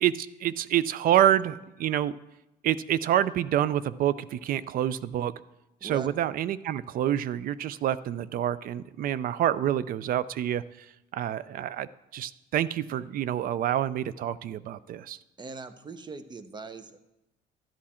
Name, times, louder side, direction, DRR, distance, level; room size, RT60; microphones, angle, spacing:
voice 1, 0.0-2.2 2.6-5.3 5.8-10.6 11.1-15.2, right 11 dB, 60° right, 18 dB, 0.4 m, -27 dB
voice 2, 15.4-17.0, right 3 dB, 25° right, 11 dB, 0.8 m, -40 dB
12.5 x 8.6 x 4.3 m, 0.94 s
cardioid pair, 110°, 17 cm